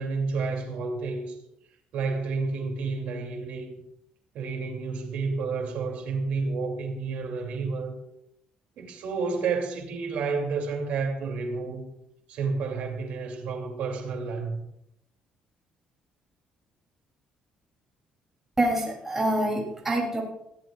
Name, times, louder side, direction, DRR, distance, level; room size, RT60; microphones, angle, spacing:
voice 1, 0.0-1.3 1.9-3.7 4.3-7.9 8.8-11.8 12.3-14.6, right 4 dB, 70° right, 2 dB, 2.7 m, -30 dB
voice 2, 18.6-20.2, right 1 dB, 15° right, -3 dB, 3.0 m, -26 dB
20.0 x 14.5 x 2.4 m, 0.80 s
cardioid pair, 170°, 2 cm